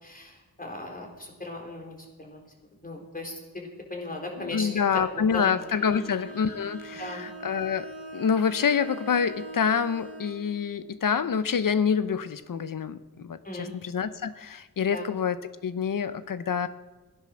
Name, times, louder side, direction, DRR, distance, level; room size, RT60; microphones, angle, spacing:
voice 1, 0.0-2.4 2.8-4.7 4.9-5.5 5.9-6.0 7.0-7.2 13.4-13.7 14.9-15.1, left 2 dB, 25° left, 1 dB, 4.0 m, -37 dB
voice 2, 4.4-16.7, left 6 dB, 65° left, 13 dB, 0.9 m, -27 dB
Bowed string instrument, 5.4-10.4, right 1 dB, 5° left, 6.6 m, -42 dB
16.5 x 10.5 x 6.4 m, 1.2 s
cardioid pair, 70°, 36 cm